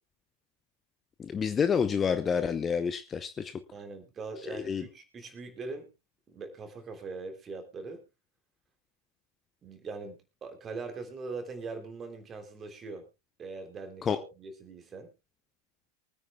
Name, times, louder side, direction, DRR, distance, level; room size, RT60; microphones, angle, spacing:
voice 1, 1.2-3.5 4.5-4.8 14.0-14.2, left 6 dB, 20° left, 11 dB, 0.8 m, -28 dB
voice 2, 3.7-5.9 6.3-8.0 9.6-13.0 13.4-15.1, right 4 dB, 25° right, 5 dB, 3.2 m, -41 dB
24.5 x 9.6 x 2.3 m, 0.26 s
figure-of-eight pair, 90°, 0 cm